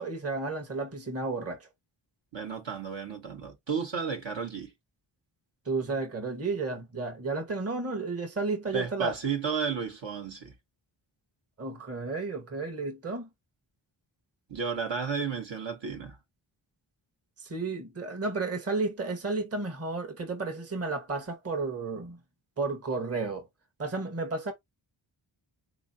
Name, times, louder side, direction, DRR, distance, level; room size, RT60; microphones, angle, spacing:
voice 1, 0.0-1.7 5.7-9.1 11.6-13.3 17.4-22.2 22.6-23.5 23.8-24.5, right 3 dB, 30° right, 1.1 m, -32 dB
voice 2, 2.3-4.7 8.7-10.5 14.5-16.2, right 6 dB, 60° right, 1.3 m, -33 dB
3.8 x 2.9 x 2.7 m
cardioid pair, 45°, 49 cm